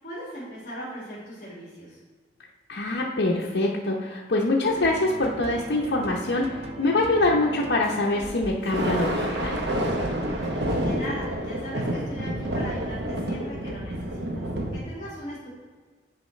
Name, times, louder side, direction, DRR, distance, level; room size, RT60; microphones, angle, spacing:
voice 1, 0.0-2.0 10.4-15.5, equal, 40° left, -8 dB, 1.9 m, -38 dB
voice 2, 2.7-9.6, left 2 dB, 70° left, -4 dB, 0.8 m, -24 dB
sound 1, 4.7-11.3, right 2 dB, 35° right, 0.4 m, -39 dB
Thunder, 8.6-14.8, right 1 dB, 65° right, 1.0 m, -28 dB
9.7 x 4.8 x 3.2 m, 1.5 s
head